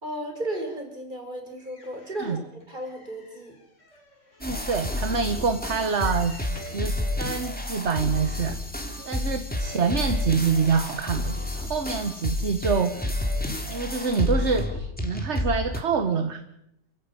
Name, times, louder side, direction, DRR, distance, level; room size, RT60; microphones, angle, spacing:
voice 1, 0.0-3.6 9.0-9.3, right 1 dB, 25° right, 4 dB, 5.1 m, -35 dB
sound 1, 1.6-6.9 7.6-7.7 8.0-8.1, left 2 dB, 40° left, 4.2 m, -52 dB
sound 2, 4.4-15.8, left 1 dB, 5° left, 2.9 m, -30 dB
voice 2, 4.4-8.6 9.0-13.1 13.7-16.4, right 5 dB, 40° right, 9 dB, 1.4 m, -26 dB
28.0 x 15.0 x 9.8 m, 0.82 s
omnidirectional pair, 2.1 m